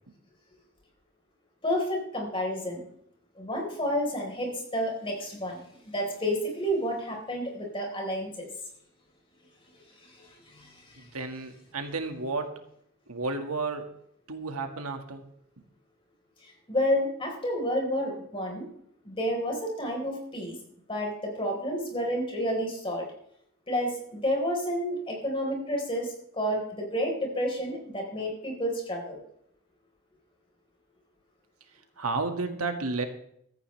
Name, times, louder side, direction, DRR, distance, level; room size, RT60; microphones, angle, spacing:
voice 1, 1.6-2.8 3.4-8.5 10.0-11.1 16.4-18.7 19.0-20.6 20.9-23.1 23.7-29.2, equal, 25° left, 0 dB, 4.2 m, -30 dB
voice 2, 11.0-12.6 13.1-13.9 14.3-15.2 32.0-33.0, right 3 dB, 85° right, 5 dB, 1.9 m, -32 dB
16.0 x 14.0 x 3.3 m, 0.70 s
head